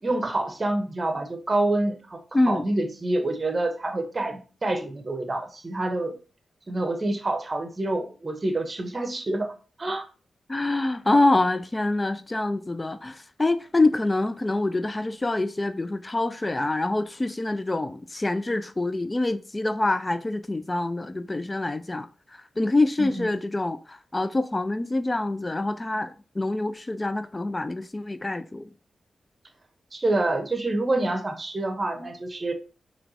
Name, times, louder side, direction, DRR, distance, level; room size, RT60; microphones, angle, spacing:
voice 1, 0.0-6.2 6.7-9.5 9.8-10.1 23.0-23.3 29.9-32.5, right 2 dB, 40° right, 0.9 m, -27 dB
voice 2, 2.3-2.6 10.5-28.7, left 2 dB, 30° left, 0.3 m, -26 dB
4.4 x 3.0 x 2.7 m
cardioid pair, 50°, 0 cm